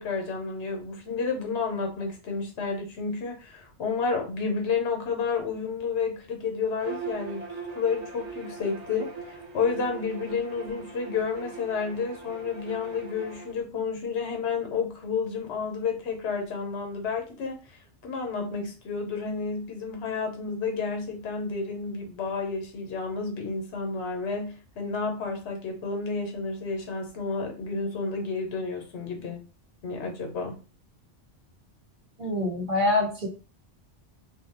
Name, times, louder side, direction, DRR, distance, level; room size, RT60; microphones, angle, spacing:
voice 1, 0.0-17.6 18.0-29.4 29.8-30.6, left 5 dB, 70° left, 3 dB, 1.0 m, -31 dB
Bowed string instrument, 6.8-13.5, right 5 dB, 90° right, 1.2 m, -40 dB
voice 2, 32.2-33.3, left 2 dB, 50° right, -4 dB, 1.1 m, -25 dB
2.6 x 2.3 x 2.8 m, 0.34 s
omnidirectional pair, 1.2 m